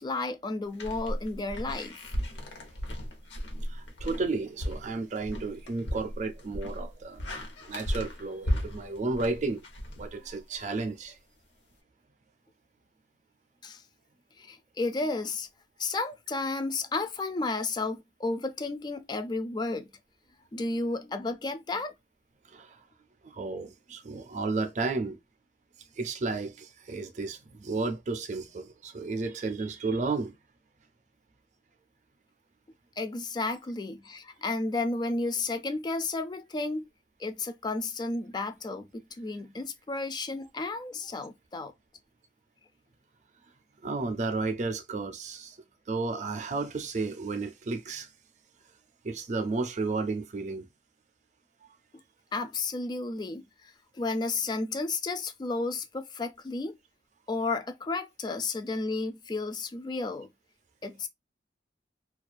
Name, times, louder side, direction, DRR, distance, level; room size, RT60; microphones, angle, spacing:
voice 1, 0.0-2.0 13.6-13.8 14.4-15.5 15.8-19.9 20.5-21.9 33.0-36.9 37.2-41.7 52.3-56.8 57.3-60.3 60.8-61.1, left 3 dB, 25° left, 0.3 m, -32 dB
sound 1, 0.7-10.6, equal, 85° left, 0.8 m, -35 dB
voice 2, 3.6-7.3 7.6-9.6 9.9-11.2 22.4-22.8 23.2-25.2 26.0-30.4 43.8-45.6 45.9-48.1 49.0-50.7, right 3 dB, 40° right, 0.5 m, -33 dB
2.3 x 2.3 x 2.4 m
head